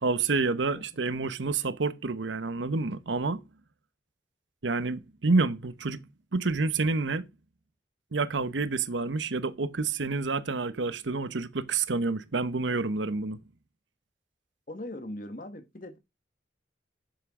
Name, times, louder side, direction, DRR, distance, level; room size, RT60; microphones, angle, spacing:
voice 1, 0.0-3.4 4.6-6.0 6.3-7.3 8.1-13.4, right 3 dB, 85° right, 0.9 m, -28 dB
voice 2, 14.7-16.0, left 1 dB, 45° left, 1.6 m, -39 dB
10.5 x 7.0 x 3.7 m
head